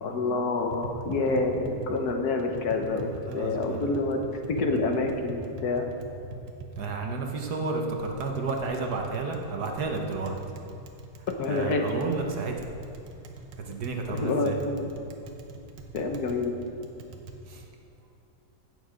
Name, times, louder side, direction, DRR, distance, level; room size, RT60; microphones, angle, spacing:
voice 1, 0.0-3.1 3.3-4.2 4.5-5.9 11.4-11.9 14.1-14.9 15.9-16.5, left 3 dB, 60° left, 3 dB, 1.4 m, -27 dB
Tap, 0.5-17.4, right 3 dB, 90° right, 1.7 m, -42 dB
voice 2, 3.0-3.9 6.8-10.3 11.5-12.7 13.6-14.6 17.5-17.6, right 3 dB, 65° right, 2 dB, 1.6 m, -31 dB
16.0 x 7.0 x 5.1 m, 2.7 s
omnidirectional pair, 1.9 m